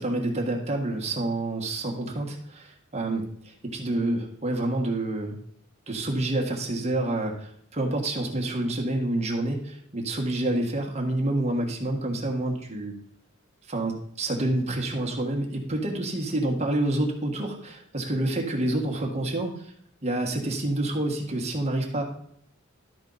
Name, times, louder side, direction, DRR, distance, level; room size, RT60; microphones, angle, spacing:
voice 1, 0.0-3.2 3.6-5.4 5.9-13.0 13.7-19.7 20.0-22.0, right 1 dB, 35° right, 1 dB, 1.4 m, -28 dB
12.0 x 4.5 x 4.0 m, 0.69 s
head